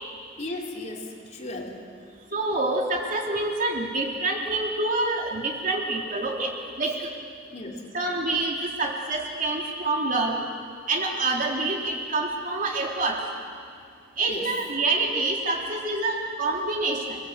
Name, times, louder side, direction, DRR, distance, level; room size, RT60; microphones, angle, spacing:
voice 1, 0.4-1.8 7.5-7.9 14.3-14.5, left 2 dB, 35° left, 0 dB, 3.4 m, -36 dB
voice 2, 2.3-6.5 6.8-7.1 7.9-10.4 10.9-13.2 14.2-17.2, right 2 dB, 45° right, 0 dB, 3.5 m, -27 dB
29.0 x 21.5 x 8.4 m, 2.2 s
head